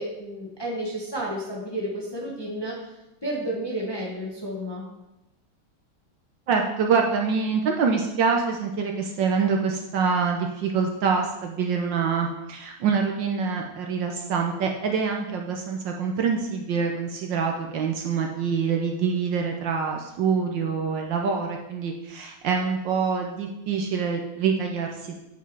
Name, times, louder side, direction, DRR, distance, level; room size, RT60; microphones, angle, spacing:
voice 1, 0.0-2.8 3.2-4.9, right 1 dB, 15° left, -3 dB, 1.1 m, -31 dB
voice 2, 6.5-25.2, right 5 dB, 65° right, 2 dB, 1.4 m, -25 dB
9.1 x 4.7 x 4.7 m, 0.93 s
omnidirectional pair, 2.3 m